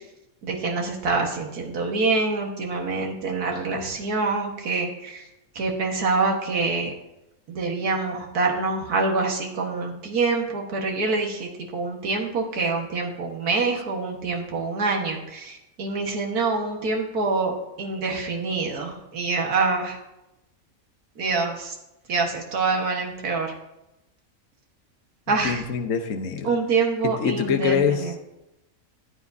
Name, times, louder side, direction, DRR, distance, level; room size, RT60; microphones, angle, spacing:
voice 1, 0.4-5.2 5.6-6.9 7.5-20.0 21.2-21.8 22.1-23.5 25.3-25.6 26.4-28.1, right 3 dB, 90° right, 1 dB, 2.0 m, -26 dB
voice 2, 25.3-26.5 27.0-28.2, left 7 dB, 60° left, 6 dB, 1.3 m, -25 dB
14.0 x 9.6 x 2.7 m, 0.90 s
omnidirectional pair, 1.6 m